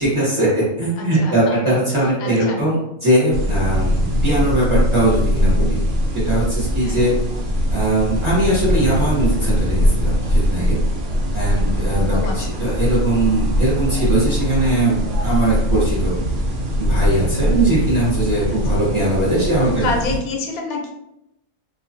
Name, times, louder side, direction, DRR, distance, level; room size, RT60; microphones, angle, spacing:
voice 1, 0.0-2.8 3.0-5.8 6.1-7.1 7.7-10.8 11.3-16.1 16.8-19.9, right 1 dB, 25° right, -9 dB, 0.7 m, -20 dB
voice 2, 1.0-1.8 2.0-2.6 6.8-7.1 11.4-11.7 12.1-12.7 18.7-18.8 19.6-20.9, left 3 dB, 85° left, 2 dB, 1.1 m, -29 dB
sound 1, 3.3-20.2, equal, 65° right, 0.9 m, -21 dB
2.4 x 2.3 x 2.5 m, 0.84 s
omnidirectional pair, 1.5 m